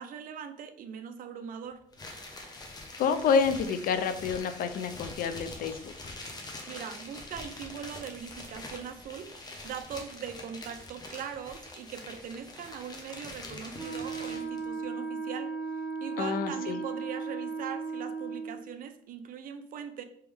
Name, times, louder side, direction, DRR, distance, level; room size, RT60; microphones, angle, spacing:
voice 1, 0.0-1.8 6.7-15.5 16.0-20.0, right 8 dB, 55° right, 8 dB, 0.5 m, -41 dB
sound 1, 1.9-14.6, left 2 dB, 25° left, 0.8 m, -44 dB
voice 2, 3.0-6.1 16.2-16.8, left 6 dB, 60° left, 10 dB, 0.4 m, -28 dB
Wind instrument woodwind instrument, 13.8-18.6, right 4 dB, 30° right, 1.5 m, -36 dB
3.4 x 3.0 x 3.4 m, 0.66 s
cardioid pair, 110°, 17 cm